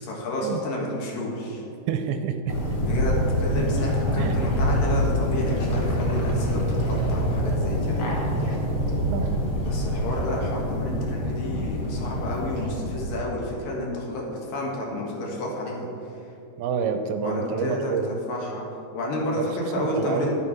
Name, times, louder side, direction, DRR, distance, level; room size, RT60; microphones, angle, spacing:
voice 1, 0.0-1.6 2.8-8.3 9.6-15.9 17.2-18.7 18.9-20.3, left 1 dB, 65° left, -2 dB, 3.1 m, -30 dB
voice 2, 1.9-2.5 4.2-4.4 9.1-9.4 16.6-18.1 19.4-19.5 19.8-20.3, right 6 dB, 80° right, 7 dB, 2.5 m, -28 dB
sound 1, 2.5-13.2, equal, 45° left, 1.3 m, -25 dB
12.0 x 7.1 x 6.0 m, 2.6 s
omnidirectional pair, 4.5 m